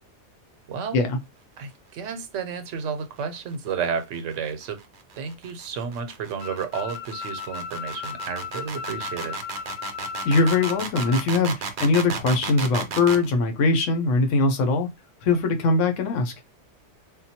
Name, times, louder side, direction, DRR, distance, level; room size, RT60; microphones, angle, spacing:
voice 1, 0.7-1.0 1.6-4.8 5.2-9.4, right 6 dB, 85° right, 0.9 m, -32 dB
sound 1, 4.0-13.3, right 5 dB, 50° right, 0.6 m, -34 dB
sound 2, 6.4-11.2, left 6 dB, 60° left, 0.4 m, -36 dB
voice 2, 10.2-14.9 15.2-16.3, left 3 dB, 80° left, 1.0 m, -21 dB
3.7 x 2.2 x 2.8 m
omnidirectional pair, 1.2 m